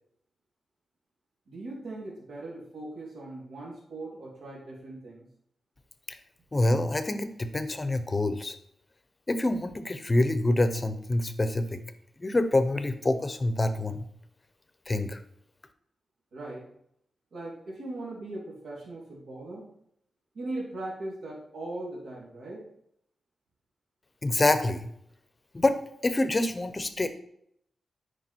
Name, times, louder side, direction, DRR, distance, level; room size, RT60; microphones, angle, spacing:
voice 1, 1.5-5.2 16.3-16.6 17.3-19.7 20.3-22.6, right 2 dB, 80° right, -4 dB, 3.1 m, -39 dB
voice 2, 6.5-8.6 9.3-11.8 12.2-14.0 14.9-15.2 24.2-24.9 25.5-25.8 26.0-27.1, left 2 dB, 25° left, 10 dB, 0.7 m, -26 dB
9.3 x 5.1 x 4.5 m, 0.71 s
wide cardioid pair, 135°, 0 cm